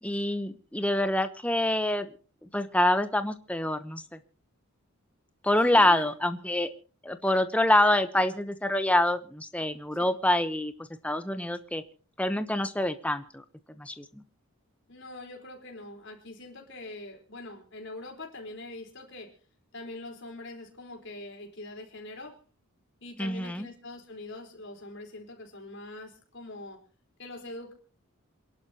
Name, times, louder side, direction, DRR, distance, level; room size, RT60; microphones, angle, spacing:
voice 1, 0.0-2.1 2.4-4.2 5.4-6.7 7.0-11.8 12.2-13.4 13.8-14.1 23.2-23.7, left 1 dB, 5° left, 9 dB, 0.9 m, -26 dB
voice 2, 5.6-6.1 14.9-19.3 19.7-22.4 23.0-26.8 27.2-27.7, left 2 dB, 55° left, 2 dB, 4.3 m, -43 dB
28.0 x 11.5 x 2.9 m, 0.39 s
head